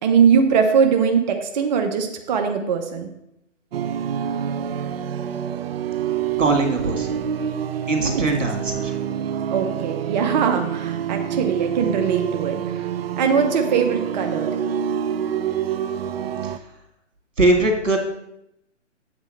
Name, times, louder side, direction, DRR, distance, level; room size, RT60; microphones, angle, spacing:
voice 1, 0.0-3.1 8.0-8.3 9.5-12.9 13.2-14.6, right 6 dB, 35° right, 4 dB, 0.8 m, -21 dB
sound 1, 3.7-16.6, right 8 dB, 55° right, 0.5 m, -27 dB
voice 2, 6.4-7.2 7.9-8.9 16.4-16.6 17.4-18.0, right 2 dB, 85° right, 3 dB, 2.1 m, -21 dB
8.2 x 4.3 x 6.3 m, 0.81 s
hypercardioid pair, 140°, 37 cm